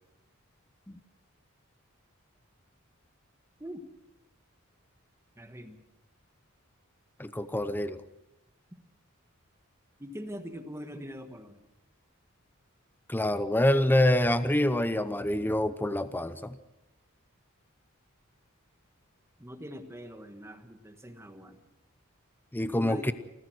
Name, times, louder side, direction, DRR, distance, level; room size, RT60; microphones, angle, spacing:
voice 1, 5.4-5.8 10.0-11.6 19.4-21.6 22.7-23.1, equal, 15° right, 7 dB, 1.4 m, -42 dB
voice 2, 7.2-8.0 13.1-16.6 22.5-23.1, left 1 dB, 10° left, 12 dB, 0.7 m, -26 dB
28.5 x 14.5 x 6.3 m, 0.92 s
head